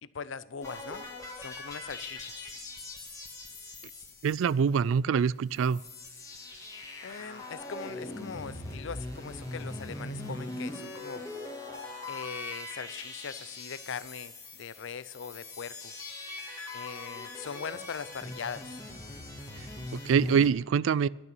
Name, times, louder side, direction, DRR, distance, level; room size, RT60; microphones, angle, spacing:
voice 1, 0.0-1.0 1.4-2.5 7.0-11.2 12.1-15.9 16.7-18.8, left 6 dB, 65° left, 17 dB, 0.5 m, -41 dB
sound 1, 0.6-5.0 5.3-5.4 5.5-20.5, left 2 dB, 15° left, 1.8 m, -41 dB
voice 2, 4.2-5.8 19.9-21.1, right 6 dB, 70° right, 22 dB, 0.3 m, -25 dB
12.0 x 6.8 x 8.3 m, 1.0 s
head